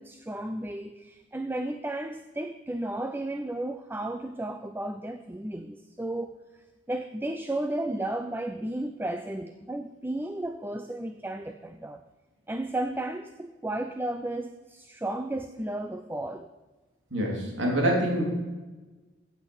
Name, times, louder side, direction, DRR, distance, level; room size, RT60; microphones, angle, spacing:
voice 1, 0.0-6.4 6.9-12.0 12.5-16.5, right 1 dB, 10° right, 8 dB, 0.4 m, -33 dB
voice 2, 17.1-18.2, right 1 dB, 70° right, -1 dB, 3.7 m, -25 dB
15.0 x 8.4 x 5.5 m, 1.2 s
head